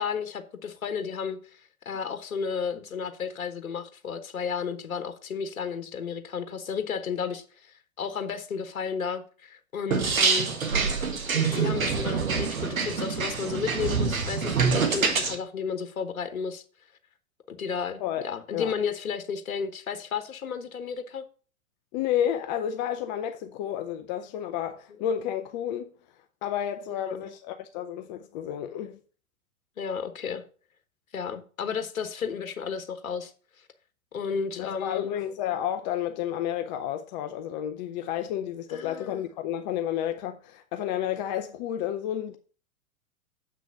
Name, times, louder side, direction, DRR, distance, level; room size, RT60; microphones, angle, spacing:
voice 1, 0.0-10.5 11.5-16.6 17.5-21.2 26.9-27.2 29.8-30.4 31.1-33.3 34.1-35.2 38.7-39.3, left 6 dB, 70° left, 1.2 m, -33 dB
sound 1, 9.9-15.4, right 5 dB, 70° right, 1.8 m, -26 dB
voice 2, 18.0-18.7 21.9-25.9 26.4-29.0 34.6-42.4, left 10 dB, 30° left, 0.7 m, -31 dB
7.5 x 6.2 x 5.3 m
figure-of-eight pair, 100°, 42 cm